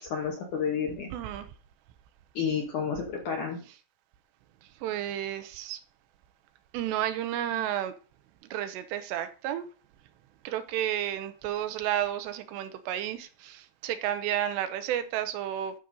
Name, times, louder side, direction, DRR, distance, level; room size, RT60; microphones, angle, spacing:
voice 1, 0.0-1.1 2.4-3.6, left 6 dB, 70° left, 2.0 m, -30 dB
voice 2, 1.1-1.5 4.8-5.8 6.7-7.9 8.5-9.7 10.4-15.7, right 11 dB, 80° right, 2.9 m, -31 dB
11.5 x 5.4 x 3.9 m
omnidirectional pair, 5.1 m